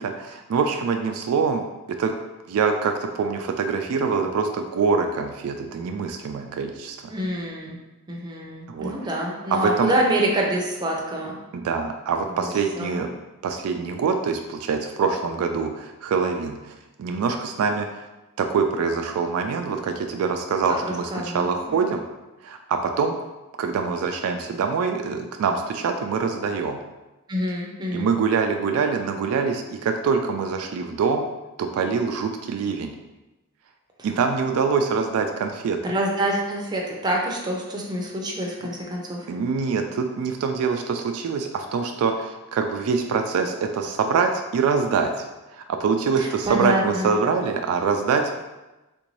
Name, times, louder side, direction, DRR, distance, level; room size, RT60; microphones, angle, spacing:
voice 1, 0.0-1.6 2.0-2.1 2.5-6.9 8.7-8.9 9.5-9.9 11.5-13.1 13.4-16.7 17.0-18.0 18.4-22.0 22.4-23.1 23.6-26.8 27.9-31.3 31.6-32.9 34.0-35.8 39.3-48.3, right 5 dB, 70° right, 5 dB, 0.3 m, -24 dB
voice 2, 7.1-7.8 8.1-11.4 12.4-12.5 12.8-13.2 20.7-21.8 27.3-28.1 34.0-34.1 35.8-39.3 46.2-47.2, right 1 dB, 20° right, -2 dB, 0.6 m, -27 dB
3.6 x 2.5 x 3.1 m, 1.0 s
head